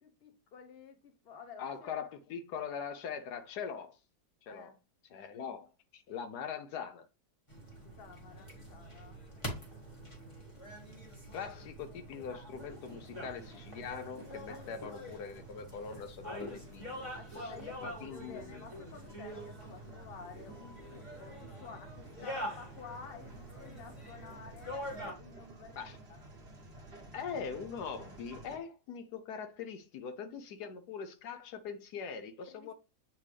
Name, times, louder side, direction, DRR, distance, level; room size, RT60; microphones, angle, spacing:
voice 1, 0.0-1.9 4.5-4.8 7.8-9.3 14.5-14.7 17.2-25.8 26.1-26.3 26.7-27.1 32.5-32.7, left 5 dB, 40° left, 1.0 m, -51 dB
voice 2, 1.6-4.0 4.4-4.7 5.1-7.1 11.3-17.1 17.3-17.5 17.8-18.6 25.8-26.0 27.1-32.7, left 6 dB, 75° left, 1.2 m, -42 dB
sound 1, 7.5-25.1, equal, 20° left, 1.7 m, -45 dB
sound 2, 12.6-28.6, right 2 dB, 40° right, 1.3 m, -55 dB
8.2 x 3.5 x 3.3 m
omnidirectional pair, 1.8 m